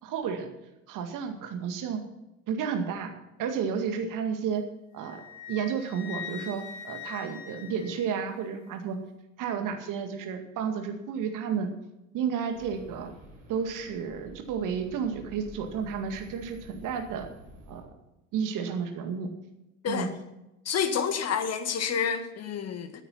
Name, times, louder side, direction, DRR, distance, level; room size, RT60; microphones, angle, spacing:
voice 1, 0.0-0.5 0.9-2.0 2.5-3.1 3.4-4.6 4.9-5.2 5.5-9.0 9.4-11.7 12.1-13.1 13.5-17.3 17.7-17.9 18.3-19.3 19.9-20.1, right 6 dB, 55° right, 6 dB, 2.1 m, -31 dB
Wind instrument woodwind instrument, 5.0-8.5, left 8 dB, 55° left, 2.5 m, -42 dB
sound 1, 12.5-17.8, equal, 75° right, 3.5 m, -50 dB
voice 2, 20.7-23.0, left 7 dB, 40° left, 9 dB, 1.8 m, -29 dB
15.5 x 9.2 x 5.7 m, 0.93 s
figure-of-eight pair, 60°, 39 cm